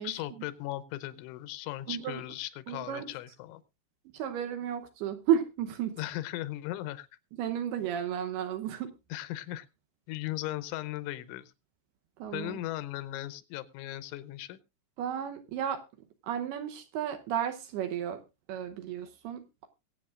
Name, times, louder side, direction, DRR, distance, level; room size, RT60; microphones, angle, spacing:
voice 1, 0.0-3.6 6.0-7.1 9.1-9.7 10.1-11.5 12.3-14.6, left 15 dB, 90° left, 16 dB, 3.2 m, -37 dB
voice 2, 1.9-2.2 2.7-3.1 4.1-5.9 7.4-8.9 12.2-12.6 15.0-15.8 16.3-18.2 18.5-19.7, right 9 dB, 75° right, 7 dB, 2.6 m, -33 dB
22.5 x 8.5 x 2.5 m, 0.26 s
omnidirectional pair, 5.3 m